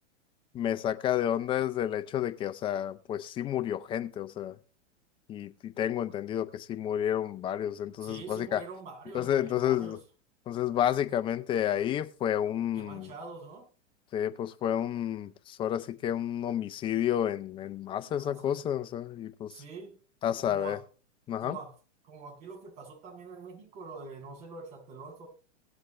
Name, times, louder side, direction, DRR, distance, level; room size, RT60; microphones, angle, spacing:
voice 1, 0.5-4.6 5.3-8.6 9.1-10.0 10.5-13.1 14.1-19.5 20.2-20.8 21.3-21.6, left 10 dB, 15° left, 0.4 m, -30 dB
voice 2, 8.0-10.0 12.7-13.7 18.0-18.6 19.5-20.0 20.4-20.8 21.4-21.7 22.0-25.3, right 4 dB, 45° right, 8.0 m, -45 dB
18.0 x 7.7 x 3.2 m
hypercardioid pair, 135°, 36 cm